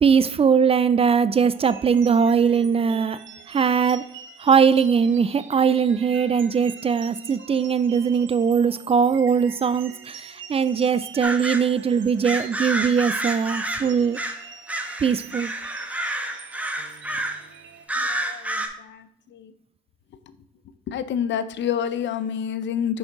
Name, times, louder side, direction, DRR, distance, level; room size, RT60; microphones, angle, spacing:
voice 1, 0.0-4.1 4.4-14.2 15.0-15.5, right 6 dB, 30° right, 0.3 m, -20 dB
sound 1, 1.5-17.8, right 7 dB, 75° right, 0.9 m, -45 dB
sound 2, 11.2-11.7 12.2-14.4 14.7-17.4 17.9-18.7, right 1 dB, 5° right, 1.1 m, -29 dB
voice 2, 18.0-19.5 20.3-20.4 20.9-23.0, left 8 dB, 65° left, 0.6 m, -29 dB
6.2 x 5.9 x 3.8 m
cardioid pair, 90°, 20 cm